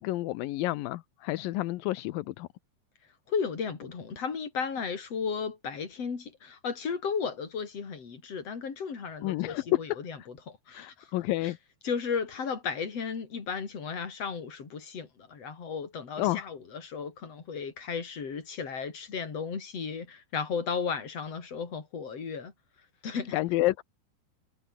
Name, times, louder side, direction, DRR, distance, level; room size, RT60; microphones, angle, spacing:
voice 1, 0.0-2.5 9.2-9.6 10.7-11.6 16.2-16.5 23.3-23.8, left 17 dB, 80° left, 2.1 m, -30 dB
voice 2, 3.3-11.1 11.4-11.5 11.8-22.5 23.0-23.4, left 6 dB, 35° left, 4.3 m, -34 dB
omnidirectional pair, 5.0 m